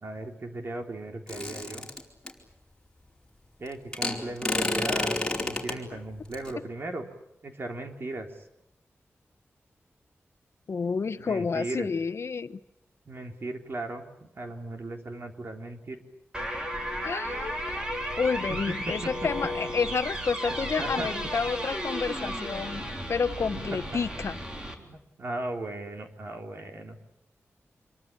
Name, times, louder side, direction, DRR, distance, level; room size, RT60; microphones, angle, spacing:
voice 1, 0.0-1.9 3.6-7.1 7.4-8.3 11.2-11.9 13.1-16.0 18.5-18.6 18.9-19.1 20.5-21.1 23.5-23.8 24.8-27.0, right 2 dB, 50° right, 4 dB, 3.7 m, -37 dB
sound 1, 1.3-2.3 3.9-5.8 6.3-6.5, left 2 dB, 15° left, 4.6 m, -29 dB
voice 2, 10.7-12.6 17.0-17.9 18.2-24.3, left 5 dB, 65° left, 12 dB, 1.0 m, -30 dB
sound 2, 16.3-24.8, equal, 20° right, 3.8 m, -34 dB
27.0 x 23.5 x 8.8 m, 0.80 s
wide cardioid pair, 120°, 5 cm